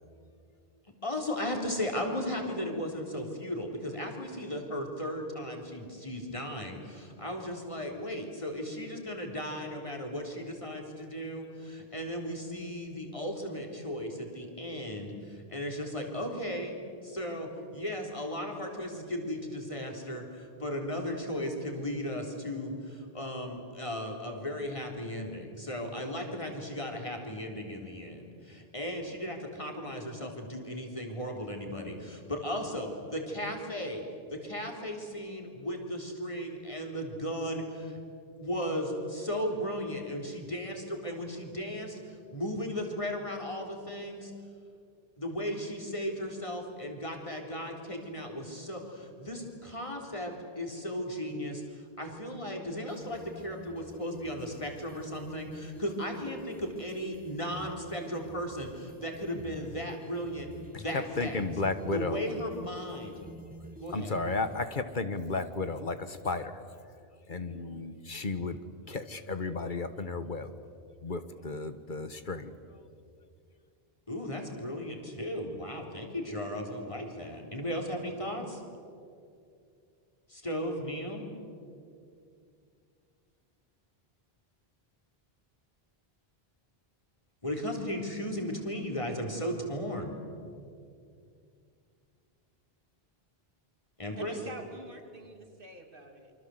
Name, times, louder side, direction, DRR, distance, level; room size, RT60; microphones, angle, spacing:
voice 1, 1.0-16.8 17.0-34.0 34.3-38.0 38.4-44.3 45.2-61.4 61.9-63.1 63.8-64.1 74.1-78.6 80.3-81.3 87.4-90.1 94.0-94.3, equal, 30° left, 2 dB, 4.0 m, -36 dB
sound 1, 52.6-64.6, right 2 dB, 10° right, 1.9 m, -48 dB
voice 2, 60.7-62.2 63.9-66.6 67.3-68.6 68.9-70.5 71.0-72.5, left 3 dB, 50° left, 10 dB, 1.4 m, -33 dB
voice 3, 94.1-96.3, right 2 dB, 60° right, 4 dB, 2.9 m, -46 dB
28.0 x 24.5 x 7.9 m, 2.4 s
omnidirectional pair, 1.0 m